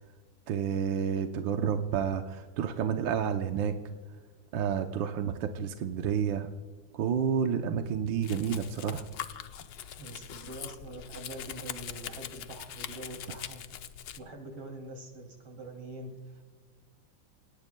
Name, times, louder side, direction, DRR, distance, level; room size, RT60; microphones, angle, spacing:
voice 1, 0.5-3.8 4.5-6.5 6.9-9.0, right 7 dB, 70° right, 5 dB, 1.5 m, -30 dB
Domestic sounds home sounds, 8.2-14.2, left 10 dB, 70° left, 1.3 m, -42 dB
voice 2, 10.0-13.6 14.2-16.5, right 2 dB, 85° right, 2 dB, 3.7 m, -44 dB
28.0 x 18.0 x 2.2 m, 1.5 s
omnidirectional pair, 2.2 m